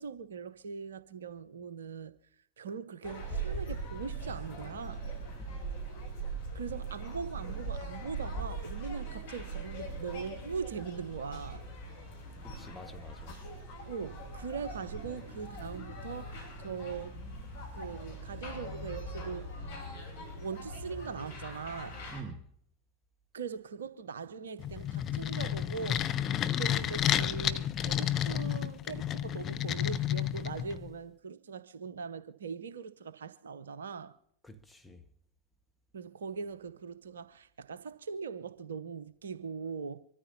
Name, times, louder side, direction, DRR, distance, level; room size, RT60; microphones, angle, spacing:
voice 1, 0.0-2.1 2.6-5.0 6.5-11.6 13.9-17.2 17.7-19.6 20.4-22.0 23.3-34.2 35.9-40.0, right 5 dB, 65° right, 0.8 m, -41 dB
sound 1, 3.0-22.2, right 2 dB, 55° left, 5.6 m, -41 dB
voice 2, 12.4-13.3 22.1-22.5 34.4-35.0, right 1 dB, 5° left, 1.5 m, -47 dB
sound 2, 24.6-30.9, left 10 dB, 30° left, 0.6 m, -31 dB
25.0 x 13.5 x 2.8 m
figure-of-eight pair, 90°, 0 cm